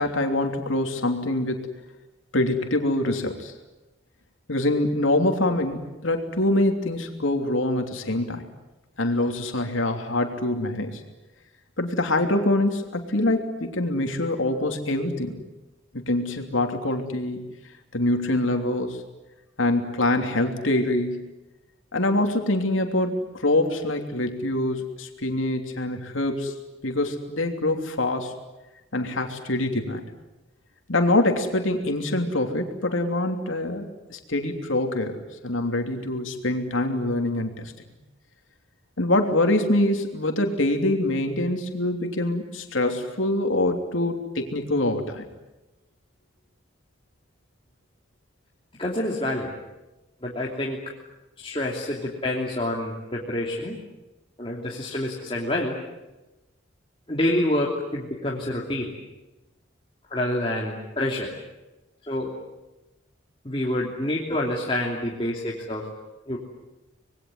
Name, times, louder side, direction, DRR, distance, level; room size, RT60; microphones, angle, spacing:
voice 1, 0.0-1.7 2.3-3.5 4.5-8.5 9.0-11.0 11.8-15.4 15.9-17.5 17.9-19.0 19.6-21.2 21.9-26.5 26.8-28.3 28.9-30.0 30.9-35.2 35.4-37.7 39.0-45.3, left 1 dB, 85° left, 4 dB, 3.1 m, -25 dB
voice 2, 48.8-49.5 50.2-50.8 51.4-53.8 54.4-55.8 57.1-58.9 60.1-61.3 62.1-62.3 63.4-65.9 66.3-66.4, left 1 dB, 25° left, -3 dB, 3.0 m, -27 dB
26.5 x 21.0 x 9.6 m, 1.0 s
head